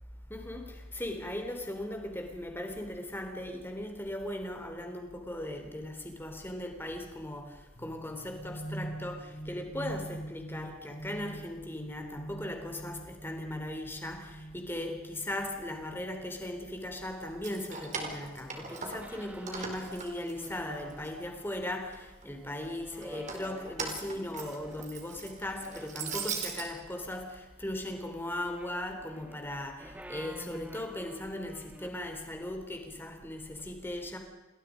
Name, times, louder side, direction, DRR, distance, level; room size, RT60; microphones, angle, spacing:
voice 1, 0.3-34.2, left 1 dB, 10° left, 3.6 m, -38 dB
sound 1, 7.8-15.5, right 1 dB, 35° left, 6.9 m, -44 dB
Keys jangling, 17.3-19.2 19.5-21.1 21.5-22.2 23.0-26.7, right 5 dB, 35° right, 4.3 m, -39 dB
sound 2, 18.5-25.0 25.6-26.8 28.3-31.9, equal, 5° right, 1.3 m, -50 dB
29.0 x 21.0 x 5.2 m
head